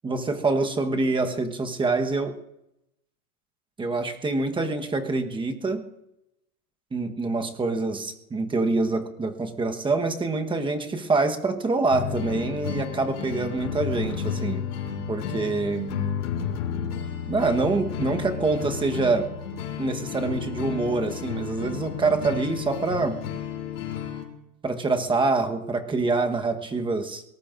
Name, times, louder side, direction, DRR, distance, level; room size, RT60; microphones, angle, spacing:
voice 1, 0.0-2.3 3.8-5.8 6.9-14.7 15.1-15.9 17.3-19.3 19.8-23.2 24.6-27.2, right 3 dB, 10° right, 6 dB, 1.1 m, -25 dB
sound 1, 11.9-24.2, left 7 dB, 85° left, 3.4 m, -32 dB
22.5 x 19.0 x 2.5 m, 0.85 s
supercardioid pair, 140°, 45 cm